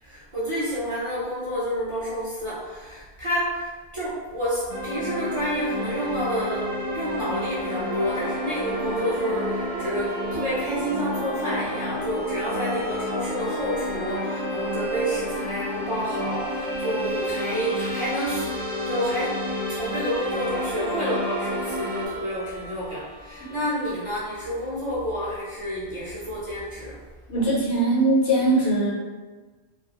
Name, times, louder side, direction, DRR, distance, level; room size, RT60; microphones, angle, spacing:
voice 1, 0.0-19.4 19.7-27.0, equal, 40° right, -10 dB, 0.5 m, -29 dB
sound 1, 4.7-22.1, left 1 dB, 70° right, 0.8 m, -31 dB
Bowed string instrument, 7.9-24.5, equal, 50° left, 0.5 m, -37 dB
voice 2, 27.3-28.9, right 2 dB, 75° left, -5 dB, 1.0 m, -21 dB
2.3 x 2.0 x 2.7 m, 1.3 s
omnidirectional pair, 1.1 m